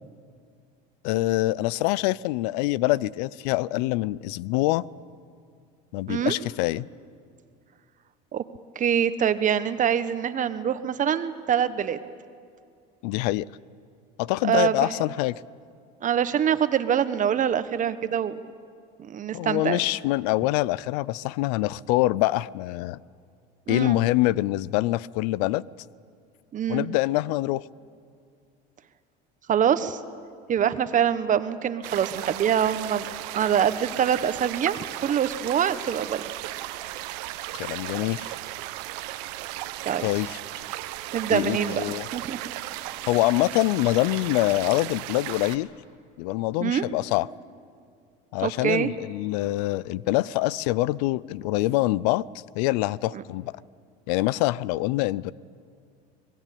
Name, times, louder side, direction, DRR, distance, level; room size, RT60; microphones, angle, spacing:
voice 1, 1.0-4.9 5.9-6.9 13.0-13.5 14.2-15.4 19.3-23.0 23.7-25.6 26.7-27.6 37.6-38.3 40.0-40.4 41.3-42.1 43.1-45.7 46.2-47.3 48.3-52.2 52.5-53.5 54.1-55.3, left 18 dB, 85° left, 22 dB, 0.5 m, -25 dB
voice 2, 8.7-12.0 14.4-15.0 16.0-18.3 19.0-19.8 23.7-24.0 26.5-26.9 29.5-30.0 30.5-33.1 33.3-34.8 35.0-36.2 39.8-40.1 41.1-41.8 42.1-42.4 46.6-46.8 48.4-48.9 53.1-53.2, right 9 dB, 40° right, 12 dB, 1.3 m, -24 dB
sound 1, 31.8-45.6, right 15 dB, 85° right, 1.1 m, -36 dB
24.5 x 20.0 x 8.5 m, 2.3 s
supercardioid pair, 105°, 20 cm